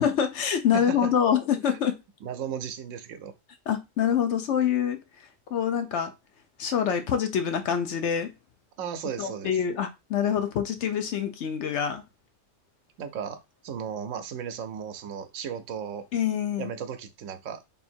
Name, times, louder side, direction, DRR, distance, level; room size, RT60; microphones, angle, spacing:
voice 1, 0.0-2.0 3.7-5.0 5.5-6.1 6.6-8.3 9.2-12.0 16.1-16.7, left 8 dB, 65° left, 0.9 m, -25 dB
voice 2, 0.7-1.1 2.2-3.3 8.8-9.6 13.0-16.1 16.6-17.6, right 7 dB, 80° right, 1.0 m, -35 dB
3.5 x 2.6 x 4.3 m
omnidirectional pair, 1.3 m